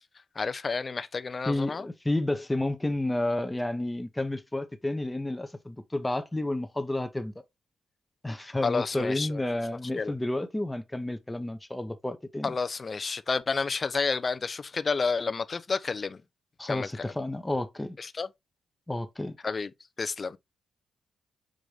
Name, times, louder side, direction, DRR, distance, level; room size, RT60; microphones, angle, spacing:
voice 1, 0.4-1.9 8.6-9.4 10.0-10.1 12.4-16.2 16.7-17.1 18.0-18.3 19.4-19.7 20.0-20.4, left 4 dB, 45° left, 0.5 m, -30 dB
voice 2, 1.5-7.3 8.2-12.5 16.6-18.0 18.9-19.4, left 1 dB, 15° left, 0.8 m, -31 dB
6.3 x 2.5 x 3.3 m
supercardioid pair, 45°, 0 cm